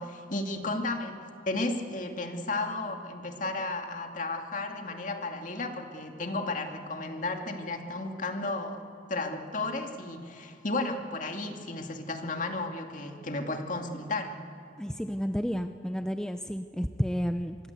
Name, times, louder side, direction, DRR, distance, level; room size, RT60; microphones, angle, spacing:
voice 1, 0.0-8.8 9.1-14.4, left 2 dB, 45° left, 4 dB, 2.4 m, -33 dB
voice 2, 14.8-17.6, equal, 5° left, 8 dB, 0.6 m, -31 dB
26.0 x 22.5 x 8.2 m, 2.8 s
head